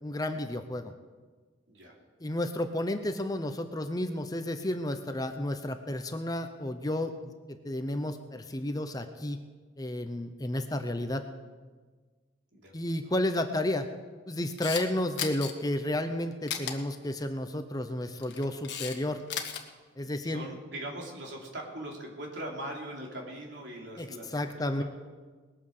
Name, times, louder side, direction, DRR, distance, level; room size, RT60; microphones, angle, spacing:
voice 1, 0.0-0.9 2.2-9.4 9.8-11.2 12.7-13.9 14.3-19.2 20.0-20.5 24.0-24.1 24.3-24.8, left 1 dB, 20° left, 8 dB, 0.7 m, -32 dB
voice 2, 12.5-13.1 20.2-24.8, right 1 dB, 65° right, -1 dB, 3.1 m, -41 dB
Camera, 14.4-14.8 15.2-15.5 16.5-16.7 18.0-19.0 19.2-19.6, left 8 dB, 60° left, 1.5 m, -34 dB
20.0 x 9.0 x 6.6 m, 1.4 s
head